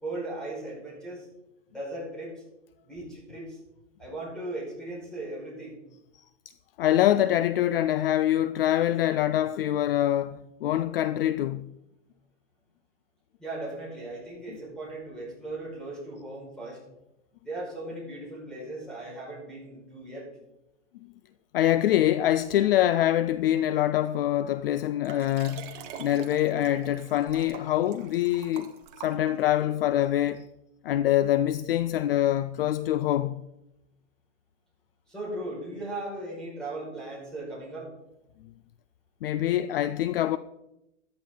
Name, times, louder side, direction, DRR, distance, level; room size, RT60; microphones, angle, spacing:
voice 1, 0.0-1.3 1.7-2.3 2.8-3.6 4.0-5.8 13.4-16.8 17.4-20.3 35.1-37.9, right 2 dB, ahead, 5.5 m, -37 dB
voice 2, 6.8-11.8 21.5-28.7 29.0-30.5 30.8-33.5 39.2-40.4, left 12 dB, 50° left, 0.5 m, -25 dB
Liquid, 25.0-29.6 30.3-30.4, right 8 dB, 30° right, 1.2 m, -45 dB
14.0 x 10.5 x 3.9 m
supercardioid pair, 160°, 36 cm